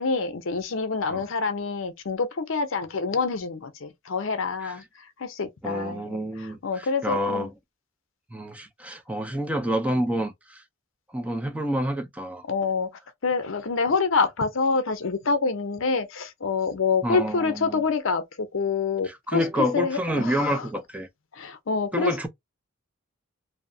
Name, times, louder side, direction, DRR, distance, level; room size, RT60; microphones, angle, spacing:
voice 1, 0.0-4.8 5.2-6.2 6.6-7.5 12.5-12.9 13.2-19.4 19.7-20.7 21.3-22.2, left 4 dB, 70° left, 0.6 m, -26 dB
voice 2, 5.6-7.5 8.3-10.6 11.1-12.4 17.0-17.8 19.0-21.1 21.9-22.3, equal, 5° right, 0.3 m, -28 dB
2.7 x 2.0 x 2.5 m
head